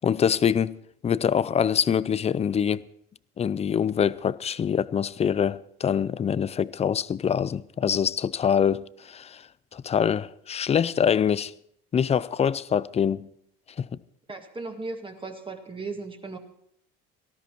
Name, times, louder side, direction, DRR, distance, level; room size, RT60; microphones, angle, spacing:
voice 1, 0.0-0.8 1.0-2.8 3.4-9.4 9.7-11.5 11.9-13.3 13.8-13.9, left 8 dB, 20° left, 0.5 m, -24 dB
voice 2, 14.3-16.4, right 3 dB, 15° right, 1.9 m, -36 dB
18.5 x 13.0 x 4.6 m
supercardioid pair, 110°, 29 cm